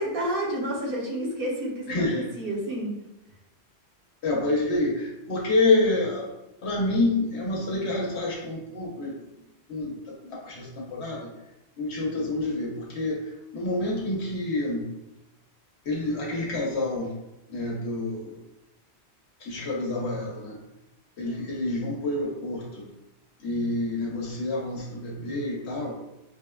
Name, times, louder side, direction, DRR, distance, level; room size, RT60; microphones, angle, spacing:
voice 1, 0.0-2.9, right 1 dB, 60° right, -3 dB, 1.0 m, -30 dB
voice 2, 1.9-2.3 4.2-6.3 6.6-9.1 9.7-11.3 11.8-14.9 15.8-17.1 17.5-18.4 19.4-20.6 21.2-22.9 23.4-25.9, left 2 dB, 80° left, -3 dB, 1.0 m, -28 dB
4.9 x 2.1 x 2.2 m, 0.93 s
omnidirectional pair, 1.1 m